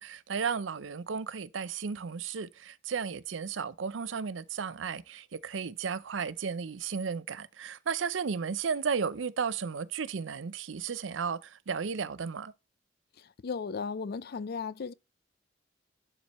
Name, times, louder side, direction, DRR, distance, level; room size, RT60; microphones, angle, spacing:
voice 1, 0.0-12.5, right 6 dB, 80° right, 0.5 m, -34 dB
voice 2, 13.4-14.9, left 5 dB, 55° left, 0.4 m, -35 dB
11.5 x 4.5 x 3.0 m
head